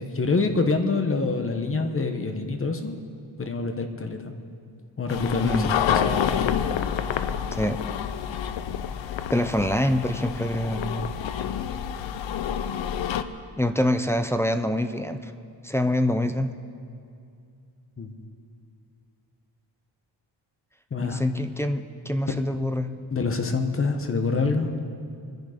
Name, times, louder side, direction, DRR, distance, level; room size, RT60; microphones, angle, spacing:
voice 1, 0.0-3.0 3.4-4.3 5.0-6.2 18.0-18.1 20.9-21.2 22.3-22.4 23.1-24.7, left 4 dB, 30° left, 6 dB, 1.0 m, -26 dB
sound 1, 5.1-13.2, left 8 dB, 75° left, 0.7 m, -28 dB
voice 2, 9.3-11.2 13.6-15.3 15.6-16.5 21.0-22.9, left 1 dB, 5° left, 6 dB, 0.4 m, -25 dB
25.0 x 10.5 x 5.0 m, 2.4 s
wide cardioid pair, 160°, 46 cm